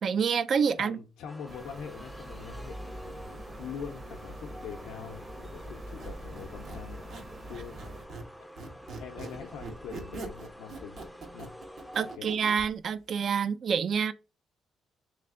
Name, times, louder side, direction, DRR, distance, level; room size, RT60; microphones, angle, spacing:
voice 1, 0.0-1.0 11.9-14.1, right 6 dB, 55° right, 0.4 m, -27 dB
voice 2, 0.8-3.1 3.6-7.1 7.5-8.0 8.4-8.5 9.0-11.1 11.3-11.5 12.1-12.3, left 7 dB, 90° left, 0.5 m, -43 dB
sound 1, 1.3-12.2, equal, 5° left, 0.5 m, -48 dB
sound 2, 1.5-8.0, right 1 dB, 40° right, 1.0 m, -44 dB
Squeak, 5.8-8.3 8.6-12.7, right 3 dB, 70° right, 1.2 m, -43 dB
3.3 x 3.2 x 3.7 m
cardioid pair, 90°, 0 cm